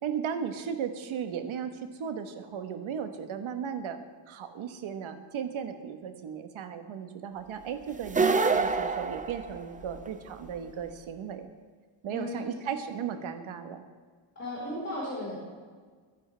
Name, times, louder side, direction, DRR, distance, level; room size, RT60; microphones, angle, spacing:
voice 1, 0.0-4.0 4.3-11.5 12.0-13.8, right 7 dB, 75° right, 7 dB, 1.4 m, -36 dB
sound 1, 8.0-10.1, right 4 dB, 15° right, 0.5 m, -26 dB
voice 2, 12.1-12.5 14.3-15.3, left 1 dB, 30° left, -8 dB, 4.5 m, -35 dB
22.5 x 10.0 x 3.4 m, 1.5 s
wide cardioid pair, 165°, 48 cm